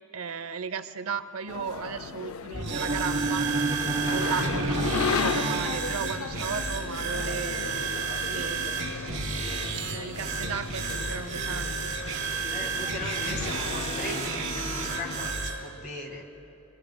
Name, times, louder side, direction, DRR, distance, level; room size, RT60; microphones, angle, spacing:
voice 1, 0.1-3.5 4.1-7.8 8.3-9.0 9.8-12.0, right 6 dB, 90° right, 12 dB, 0.6 m, -35 dB
sound 1, 1.5-15.3, left 5 dB, 85° left, 0.4 m, -36 dB
sound 2, 2.5-15.6, right 4 dB, 60° right, 3.8 m, -32 dB
sound 3, 2.7-6.6, right 3 dB, 30° right, 0.9 m, -31 dB
voice 2, 12.5-16.3, left 1 dB, 40° left, 3 dB, 1.8 m, -38 dB
29.5 x 22.0 x 2.2 m, 2.8 s
head